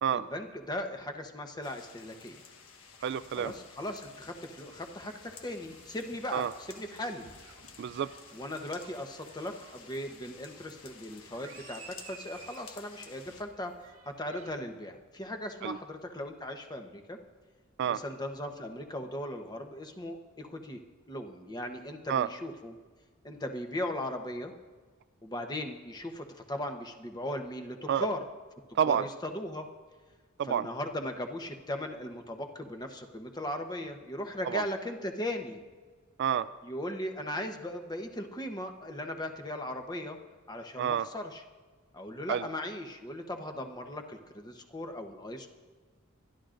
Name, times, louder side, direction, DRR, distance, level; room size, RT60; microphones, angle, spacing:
voice 1, 0.1-2.4 3.4-7.3 8.3-13.7 14.0-17.2 17.9-20.8 21.1-22.7 23.2-24.5 25.2-28.2 28.7-29.7 30.5-35.6 36.6-40.2 40.5-41.4 41.9-45.5, left 1 dB, 20° left, 5 dB, 1.0 m, -38 dB
sound 1, 1.6-13.4, left 6 dB, 90° left, 1.3 m, -53 dB
voice 2, 3.0-3.5 6.3-6.5 7.8-8.1 15.6-15.8 17.8-18.0 22.1-22.3 27.9-28.1 28.8-29.0 30.4-30.7 34.4-34.6 36.2-36.5 40.8-41.1 42.3-42.5, right 8 dB, 55° right, 14 dB, 0.3 m, -28 dB
sound 2, 3.0-14.6, right 4 dB, 90° right, 1.8 m, -55 dB
25.0 x 11.5 x 2.6 m, 1.4 s
head